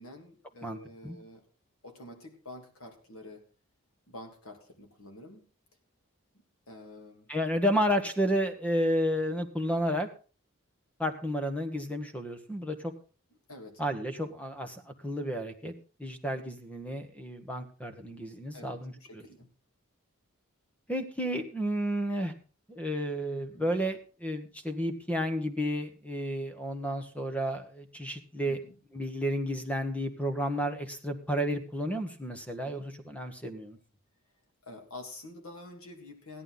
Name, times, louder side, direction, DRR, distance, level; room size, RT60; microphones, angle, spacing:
voice 1, 0.0-1.4 1.8-3.4 4.1-5.5 6.7-7.3 13.5-13.8 18.5-19.5 23.5-23.7 28.4-28.7 32.6-32.9 34.7-36.4, left 1 dB, 85° left, 4 dB, 3.2 m, -48 dB
voice 2, 7.3-10.1 11.0-12.9 13.8-15.7 16.0-19.2 20.9-22.3 22.7-28.6 28.9-33.8, equal, 5° left, 8 dB, 1.3 m, -31 dB
16.0 x 11.0 x 4.0 m, 0.36 s
head